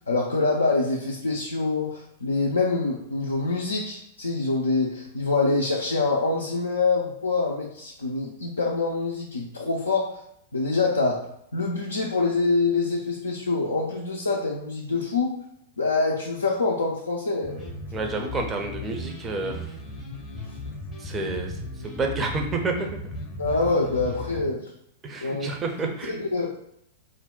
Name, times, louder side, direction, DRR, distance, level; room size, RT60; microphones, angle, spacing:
voice 1, 0.1-10.1 10.5-11.2 11.5-15.4 15.8-17.7 23.4-24.6 25.2-25.5 26.1-26.6, left 3 dB, 80° left, -2 dB, 0.4 m, -25 dB
sound 1, 17.4-24.5, left 1 dB, 25° left, 0.6 m, -36 dB
voice 2, 17.9-19.6 21.0-23.0 25.0-26.2, right 3 dB, 20° right, 2 dB, 0.5 m, -29 dB
2.5 x 2.1 x 3.6 m, 0.76 s
figure-of-eight pair, 100°, 0 cm